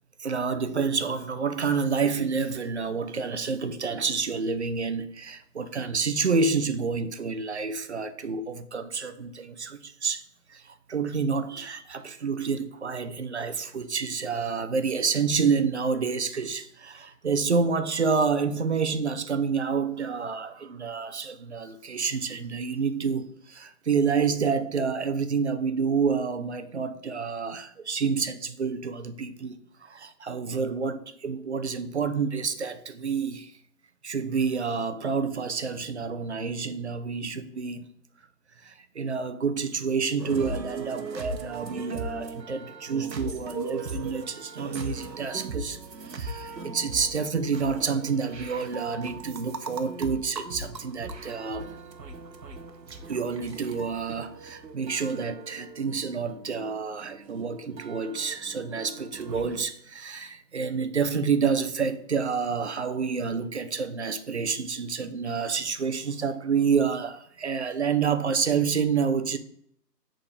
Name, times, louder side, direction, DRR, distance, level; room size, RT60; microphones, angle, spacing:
voice 1, 0.2-10.2 10.5-33.5 34.0-37.9 38.6-45.8 46.1-51.7 53.1-69.4, right 5 dB, 45° right, 0.5 m, -28 dB
sound 1, 40.2-59.6, right 3 dB, 85° right, 1.0 m, -39 dB
6.4 x 3.8 x 5.2 m
figure-of-eight pair, 145°, 49 cm